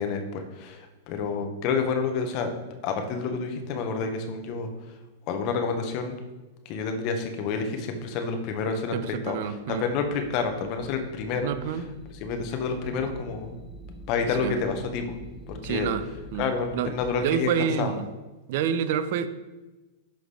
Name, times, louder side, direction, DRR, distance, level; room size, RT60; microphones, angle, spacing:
voice 1, 0.0-2.5 2.8-5.0 5.3-6.2 6.6-11.5 12.2-13.6 14.1-15.1 15.5-15.9 16.4-17.5 17.8-17.9, left 5 dB, 50° left, 5 dB, 1.2 m, -29 dB
voice 2, 8.9-9.9 11.4-11.9 14.4-14.5 15.6-16.1 16.3-16.5 16.7-16.9 17.2-18.1 18.5-19.3, right 8 dB, 60° right, 13 dB, 0.5 m, -28 dB
sound 1, 9.6-17.1, left 1 dB, 20° left, 0.7 m, -46 dB
11.5 x 3.9 x 3.4 m, 1.1 s
hypercardioid pair, 110°, 0 cm